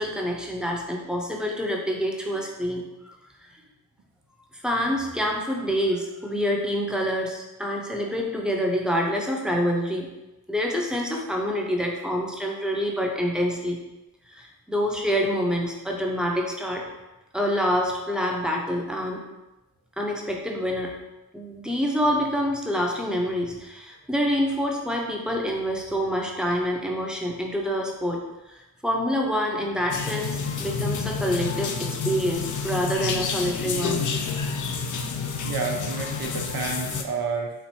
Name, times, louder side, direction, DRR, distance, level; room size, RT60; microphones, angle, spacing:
voice 1, 0.0-3.2 4.5-10.1 10.5-13.8 14.3-16.8 17.3-19.2 20.0-21.0 21.3-34.0, equal, ahead, -1 dB, 0.7 m, -27 dB
sound 1, 29.9-37.0, left 5 dB, 55° left, 0.5 m, -29 dB
voice 2, 35.4-37.5, right 4 dB, 75° right, 1 dB, 0.8 m, -30 dB
4.4 x 2.6 x 4.3 m, 1.0 s
wide cardioid pair, 95°, 37 cm